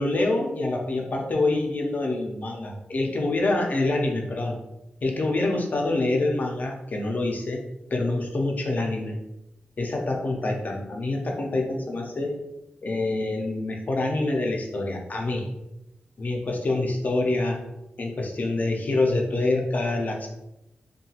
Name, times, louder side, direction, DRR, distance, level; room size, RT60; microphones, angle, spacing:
voice 1, 0.0-4.6 5.0-7.6 7.9-9.2 9.8-12.3 12.8-15.5 16.2-17.6 18.0-20.3, left 2 dB, 50° left, 1 dB, 0.5 m, -26 dB
2.8 x 2.3 x 2.8 m, 0.91 s
wide cardioid pair, 90°, 4 cm